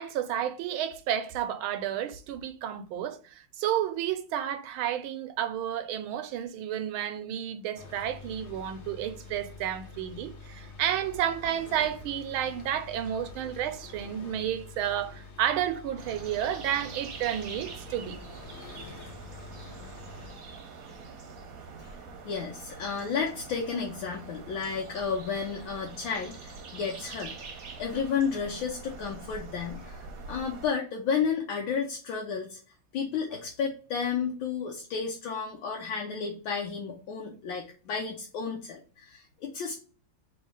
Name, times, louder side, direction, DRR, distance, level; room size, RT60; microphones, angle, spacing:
voice 1, 0.0-18.2, right 10 dB, 80° right, 1.4 m, -31 dB
sound 1, 7.7-20.3, left 3 dB, 55° left, 0.7 m, -47 dB
sound 2, 16.0-30.7, right 4 dB, 55° right, 1.1 m, -44 dB
voice 2, 22.2-39.8, left 6 dB, 75° left, 1.4 m, -32 dB
3.6 x 3.1 x 4.7 m
omnidirectional pair, 2.3 m